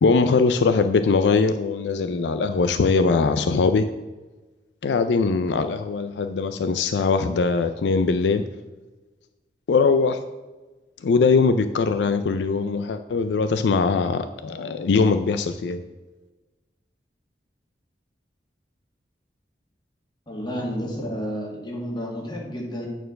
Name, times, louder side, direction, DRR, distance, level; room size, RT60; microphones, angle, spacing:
voice 1, 0.0-3.9 4.8-8.4 9.7-10.2 11.0-15.8, left 4 dB, 75° left, 9 dB, 0.4 m, -21 dB
voice 2, 20.3-22.9, equal, 25° left, -1 dB, 1.9 m, -31 dB
9.0 x 4.5 x 6.4 m, 1.2 s
head